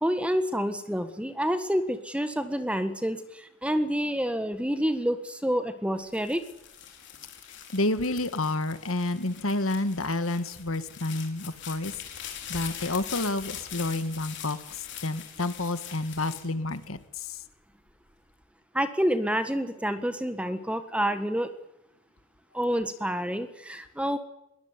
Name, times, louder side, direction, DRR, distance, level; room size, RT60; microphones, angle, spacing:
voice 1, 0.0-6.4 18.7-21.5 22.5-24.2, equal, 5° right, 10 dB, 1.5 m, -28 dB
sound 1, 6.0-17.4 17.9-18.5, left 9 dB, 55° left, 4.4 m, -42 dB
voice 2, 7.7-14.6 15.0-17.0, left 2 dB, 75° left, 12 dB, 1.8 m, -29 dB
22.0 x 19.0 x 9.7 m, 0.83 s
head